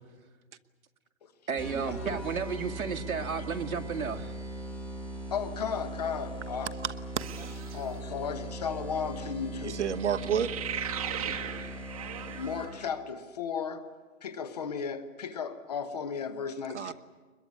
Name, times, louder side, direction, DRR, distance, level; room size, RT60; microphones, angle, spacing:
voice 1, 1.5-4.3 7.7-7.8, right 5 dB, 85° right, 2.1 m, -33 dB
sound 1, 1.6-12.9, right 1 dB, ahead, 1.8 m, -40 dB
voice 2, 5.3-6.7 7.7-9.8 11.3-11.5 12.4-13.9 14.2-16.9, left 6 dB, 30° left, 1.2 m, -35 dB
voice 3, 6.8-7.5 9.6-10.5 16.7-16.9, right 8 dB, 55° right, 1.2 m, -30 dB
sound 2, 7.2-7.9 10.0-12.9, right 9 dB, 25° right, 1.3 m, -38 dB
23.0 x 21.5 x 9.7 m
hypercardioid pair, 170°, 41 cm